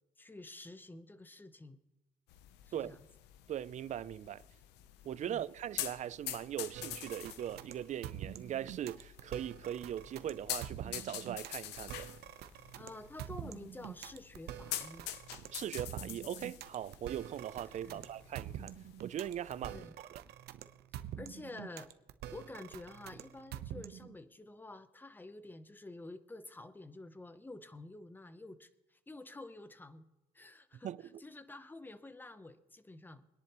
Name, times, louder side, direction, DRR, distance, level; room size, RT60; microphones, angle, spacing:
voice 1, 0.2-1.8 2.6-3.0 5.3-5.4 12.8-15.1 17.8-18.0 19.6-19.9 21.2-21.9 22.3-28.7 29.1-30.0 30.3-30.9 31.2-33.3, left 2 dB, 10° left, 0.8 m, -49 dB
sound 1, 2.3-19.7, left 13 dB, 90° left, 0.8 m, -47 dB
voice 2, 3.5-4.4 5.0-12.1 15.5-18.7 19.0-20.2 30.8-31.2, right 10 dB, 45° right, 0.4 m, -40 dB
sound 2, 6.7-24.1, right 11 dB, 75° right, 0.9 m, -46 dB
24.0 x 10.5 x 3.0 m
cardioid pair, 110°, 17 cm